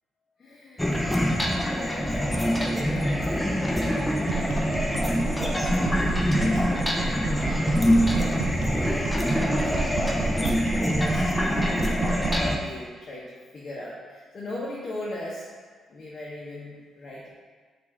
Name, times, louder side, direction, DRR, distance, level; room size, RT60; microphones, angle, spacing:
voice 1, 0.4-1.0 1.4-5.0 5.7-8.5 9.0-10.3 10.8-15.5 15.9-17.3, left 1 dB, 45° left, -6 dB, 0.7 m, -40 dB
sound 1, 0.8-12.6, equal, 10° left, 0.5 m, -24 dB
sound 2, 4.3-12.5, right 4 dB, 75° right, 0.6 m, -30 dB
5.2 x 2.5 x 3.5 m, 1.5 s
cardioid pair, 90°, 0 cm